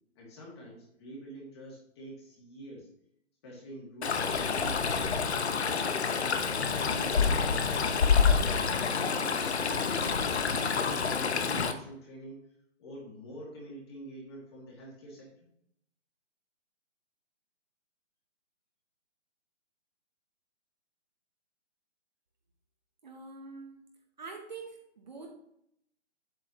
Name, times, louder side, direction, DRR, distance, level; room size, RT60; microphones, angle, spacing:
voice 1, 0.2-2.9 3.4-5.2 5.5-8.2 8.9-12.4 12.8-15.5, right 1 dB, 20° left, -3 dB, 2.1 m, -46 dB
Stream, 4.0-11.7, left 5 dB, 60° left, 0.8 m, -27 dB
voice 2, 23.0-23.8 24.2-25.3, right 4 dB, 35° right, 2 dB, 0.9 m, -45 dB
7.8 x 7.4 x 2.9 m, 0.72 s
hypercardioid pair, 170°, 36 cm